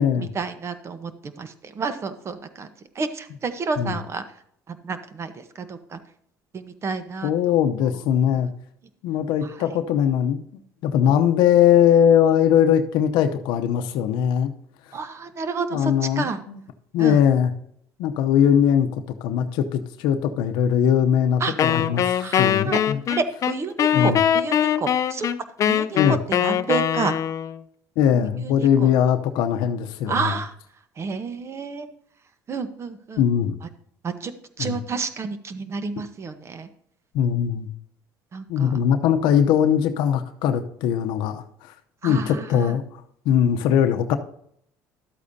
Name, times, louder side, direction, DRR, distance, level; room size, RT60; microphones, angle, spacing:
voice 1, 0.2-2.7 2.9-4.2 4.7-6.0 6.5-7.6 7.8-8.0 8.3-8.4 9.4-9.7 11.1-11.2 14.9-16.4 17.0-17.2 21.4-21.5 22.1-22.8 23.1-25.3 25.6-27.1 28.1-28.9 30.1-30.5 31.0-31.9 32.5-33.2 33.6-33.7 34.0-34.3 34.6-36.7 38.3-38.8 42.0-42.8, right 4 dB, 35° right, 11 dB, 1.1 m, -30 dB
voice 2, 7.2-8.5 9.0-10.4 10.8-14.5 15.7-16.3 16.9-17.5 18.0-18.9 19.2-23.0 23.9-24.2 26.0-26.2 28.0-30.1 33.2-33.5 34.6-34.8 37.1-37.7 38.5-41.7 42.0-42.8 43.2-44.2, left 9 dB, 75° left, 8 dB, 0.8 m, -20 dB
Wind instrument woodwind instrument, 21.6-27.6, left 9 dB, 45° left, 0.5 m, -22 dB
12.0 x 8.3 x 2.8 m, 0.68 s
supercardioid pair, 100°, 8 cm